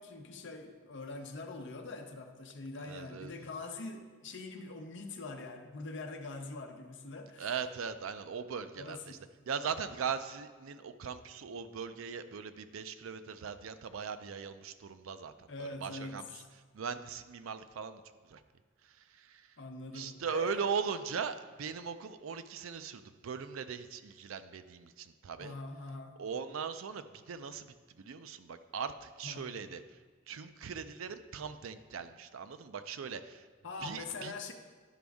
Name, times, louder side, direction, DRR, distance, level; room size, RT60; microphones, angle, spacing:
voice 1, 0.0-7.5 8.8-9.1 15.5-16.5 19.6-20.7 25.4-26.2 29.2-29.6 33.6-34.5, left 3 dB, 60° left, 5 dB, 0.8 m, -43 dB
voice 2, 2.8-3.3 7.4-9.2 9.5-16.4 16.7-18.0 18.3-18.4 18.9-19.5 19.9-25.6 26.2-30.0 30.3-33.5 33.8-34.3, right 6 dB, 80° right, 11 dB, 0.4 m, -39 dB
11.5 x 5.1 x 3.5 m, 1.4 s
head